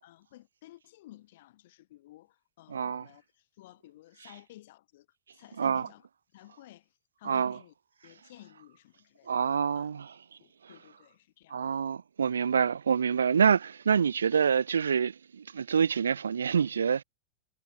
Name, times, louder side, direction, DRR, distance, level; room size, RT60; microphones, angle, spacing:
voice 1, 0.0-5.1 5.3-6.1 6.3-6.9 7.2-7.7 8.0-10.0 10.4-11.8, left 16 dB, 55° left, 4.7 m, -54 dB
voice 2, 2.7-3.1 5.6-5.9 7.2-7.6 9.3-10.1 11.5-17.0, right 7 dB, 70° right, 0.6 m, -26 dB
figure-of-eight pair, 90°, 0 cm